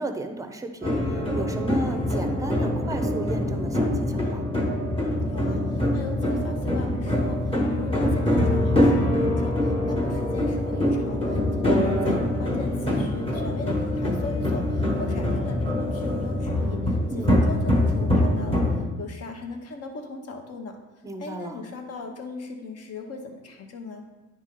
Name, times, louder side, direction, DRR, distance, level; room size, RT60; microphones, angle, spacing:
voice 1, 0.0-4.5 17.1-17.4 21.0-21.6, right 2 dB, 10° right, 6 dB, 0.5 m, -34 dB
sound 1, 0.8-18.8, left 1 dB, 20° left, 1.3 m, -24 dB
voice 2, 5.2-18.7 19.0-20.8 21.2-24.1, left 3 dB, 55° left, 4 dB, 1.0 m, -38 dB
9.6 x 3.2 x 3.7 m, 1.2 s
cardioid pair, 120°, 29 cm